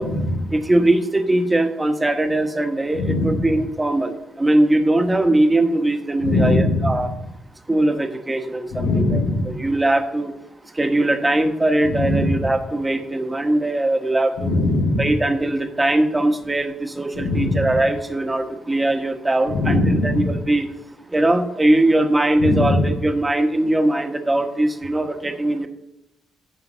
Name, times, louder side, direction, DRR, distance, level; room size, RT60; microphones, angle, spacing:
voice 1, 0.0-0.5 2.9-3.6 6.2-7.1 8.7-9.7 11.8-12.5 14.4-15.2 17.1-17.8 19.5-20.4 22.4-23.0, left 2 dB, 85° left, -3 dB, 3.2 m, -21 dB
voice 2, 0.5-7.1 7.7-10.3 10.7-14.5 15.0-20.7 21.1-25.7, right 1 dB, 15° right, 6 dB, 1.1 m, -20 dB
11.0 x 3.9 x 7.4 m, 0.85 s
cardioid pair, 90°, 0 cm